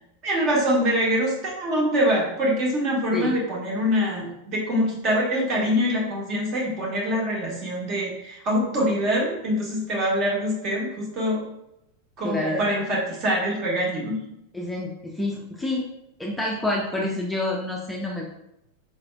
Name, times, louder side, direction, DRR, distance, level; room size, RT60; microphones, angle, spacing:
voice 1, 0.2-11.4 12.2-14.2, equal, 35° right, -3 dB, 1.2 m, -24 dB
voice 2, 12.2-12.7 14.5-15.8 16.2-18.3, left 1 dB, 5° left, -3 dB, 0.5 m, -28 dB
4.4 x 3.2 x 2.4 m, 0.84 s
figure-of-eight pair, 90°, 0 cm